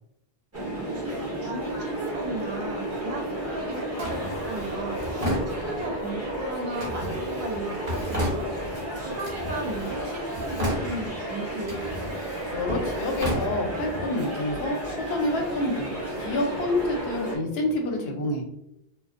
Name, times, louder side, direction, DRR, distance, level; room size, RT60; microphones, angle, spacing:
sound 1, 0.5-17.4, right 1 dB, 20° right, 0.6 m, -32 dB
voice 1, 1.4-8.5 9.0-11.8, right 2 dB, 65° right, 0 dB, 0.7 m, -36 dB
Drawer open or close, 4.0-6.1 6.8-8.9 9.2-10.0 10.3-11.2 11.6-14.1, equal, 40° right, 0.9 m, -33 dB
voice 2, 12.5-14.8 15.1-18.4, left 2 dB, 80° left, 2 dB, 0.8 m, -28 dB
2.5 x 2.1 x 2.4 m, 0.79 s
omnidirectional pair, 1.0 m